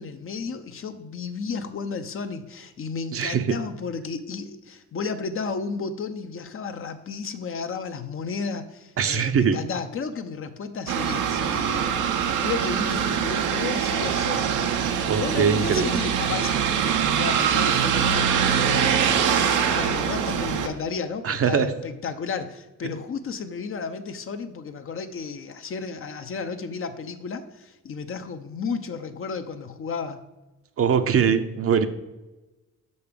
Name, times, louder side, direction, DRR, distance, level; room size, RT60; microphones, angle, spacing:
voice 1, 0.0-14.6 15.1-30.2, left 5 dB, 45° left, 9 dB, 0.8 m, -33 dB
voice 2, 3.1-3.6 9.0-9.6 15.1-15.8 21.2-21.7 30.8-31.9, right 7 dB, 50° right, 9 dB, 0.7 m, -22 dB
sound 1, 10.9-20.7, right 7 dB, 85° right, 0.9 m, -23 dB
5.8 x 5.4 x 6.7 m, 1.1 s
cardioid pair, 90°, 30 cm